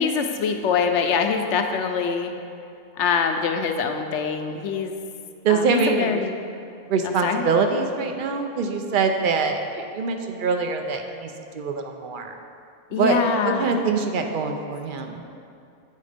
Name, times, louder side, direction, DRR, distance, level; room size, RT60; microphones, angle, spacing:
voice 1, 0.0-2.3 2.9-4.9 5.5-6.4 7.0-7.5 12.9-13.8, left 6 dB, 75° left, 5 dB, 0.9 m, -24 dB
voice 2, 5.4-6.2 6.9-12.3 12.9-15.2, right 4 dB, 55° right, 5 dB, 0.6 m, -24 dB
8.4 x 4.1 x 5.0 m, 2.5 s
omnidirectional pair, 1.3 m